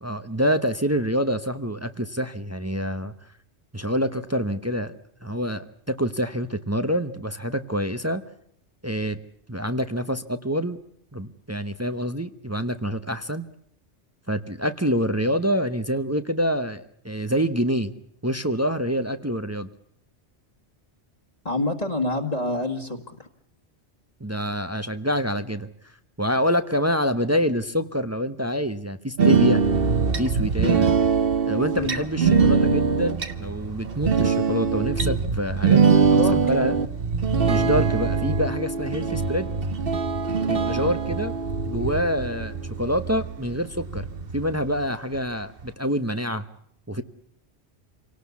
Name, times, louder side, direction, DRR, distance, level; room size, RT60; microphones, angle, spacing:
voice 1, 0.0-3.1 3.7-4.9 5.2-8.2 8.8-9.2 9.5-10.8 11.1-13.4 14.3-17.9 18.2-19.7 24.2-25.7 26.2-29.6 30.2-30.9 31.5-36.7 37.4-39.5 40.4-41.3 41.6-44.1 44.3-46.4 46.9-47.0, equal, 15° right, 10 dB, 0.9 m, -26 dB
voice 2, 21.5-23.3 31.7-32.0 36.1-36.7, left 2 dB, 35° left, 1 dB, 2.0 m, -27 dB
sound 1, 29.2-44.9 45.2-45.3 45.6-45.7, right 5 dB, 55° right, 1.4 m, -23 dB
27.5 x 18.0 x 8.4 m, 0.71 s
omnidirectional pair, 1.1 m